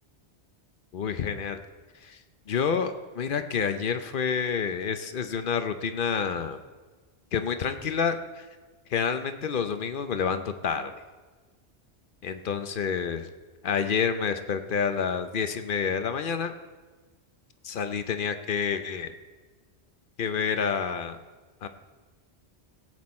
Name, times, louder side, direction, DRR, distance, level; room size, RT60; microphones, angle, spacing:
voice 1, 0.9-1.6 2.0-2.2 2.5-6.6 7.3-8.5 8.9-10.9 12.2-13.3 13.6-16.5 17.6-19.1 20.2-21.2 21.6-21.7, left 6 dB, 55° left, 9 dB, 0.8 m, -28 dB
16.5 x 7.9 x 4.2 m, 1.3 s
omnidirectional pair, 1.2 m